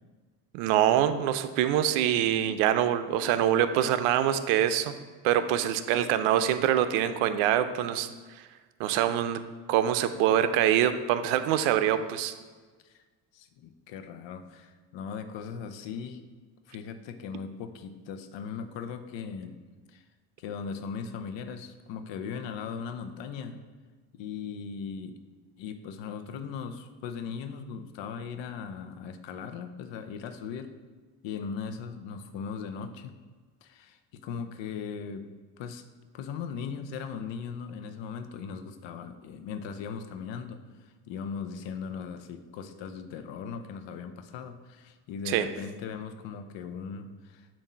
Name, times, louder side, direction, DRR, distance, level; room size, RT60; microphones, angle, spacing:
voice 1, 0.5-4.9 5.2-8.1 8.8-9.4 9.7-12.3 45.3-45.5, right 11 dB, 75° right, 11 dB, 0.6 m, -25 dB
voice 2, 13.3-16.2 16.7-19.6 19.9-20.0 20.4-23.6 24.1-25.2 25.6-30.7 31.2-33.1 33.6-35.3 35.6-35.8 36.1-47.5, left 6 dB, 60° left, 8 dB, 0.7 m, -38 dB
7.1 x 2.7 x 5.5 m, 1.4 s
supercardioid pair, 70°, 50 cm